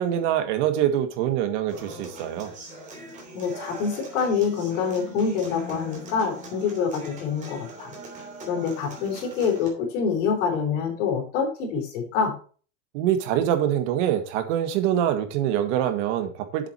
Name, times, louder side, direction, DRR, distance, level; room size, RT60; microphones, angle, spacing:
voice 1, 0.0-2.5 12.9-16.7, right 10 dB, 65° right, 8 dB, 1.7 m, -24 dB
Human voice / Acoustic guitar, 1.7-9.7, equal, 20° right, 3.1 m, -41 dB
voice 2, 3.3-7.9 8.4-12.4, left 6 dB, 70° left, 2 dB, 4.1 m, -26 dB
7.6 x 7.6 x 4.5 m, 0.40 s
supercardioid pair, 165°, 38 cm